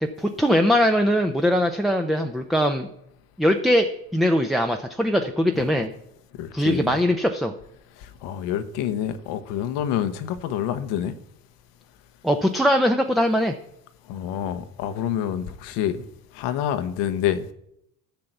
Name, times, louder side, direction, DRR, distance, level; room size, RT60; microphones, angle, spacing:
voice 1, 0.0-2.9 3.4-5.9 6.5-7.5 12.2-13.5, equal, ahead, 0.7 m, -21 dB
voice 2, 6.4-7.0 8.0-11.1 14.1-16.0 16.3-17.4, left 10 dB, 85° left, 1.1 m, -27 dB
11.5 x 5.8 x 7.9 m
cardioid pair, 110°, 40 cm